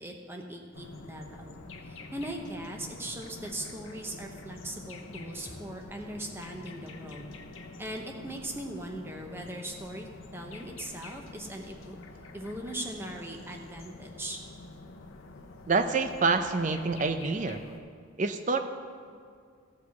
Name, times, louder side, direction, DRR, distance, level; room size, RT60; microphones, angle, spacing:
voice 1, 0.0-1.6 1.8-7.2 7.8-12.0 12.3-14.4, right 1 dB, 10° right, 2 dB, 0.8 m, -40 dB
sound 1, 0.7-17.8, left 2 dB, 75° left, 0.8 m, -47 dB
voice 2, 15.7-17.6 18.2-18.6, right 4 dB, 35° right, 8 dB, 0.5 m, -27 dB
13.5 x 4.7 x 7.0 m, 2.2 s
head